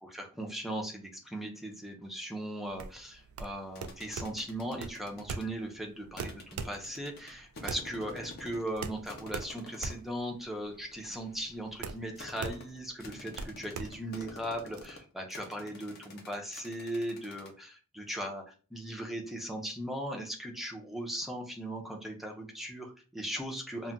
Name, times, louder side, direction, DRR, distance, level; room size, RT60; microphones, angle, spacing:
voice 1, 0.0-23.9, right 1 dB, ahead, 1 dB, 0.5 m, -38 dB
sound 1, 2.7-14.9, right 5 dB, 75° right, 0.3 m, -42 dB
sound 2, 3.8-5.5 6.2-8.8 9.1-10.1 10.7-17.5, left 2 dB, 45° left, 0.6 m, -49 dB
2.2 x 2.1 x 3.7 m, 0.36 s
head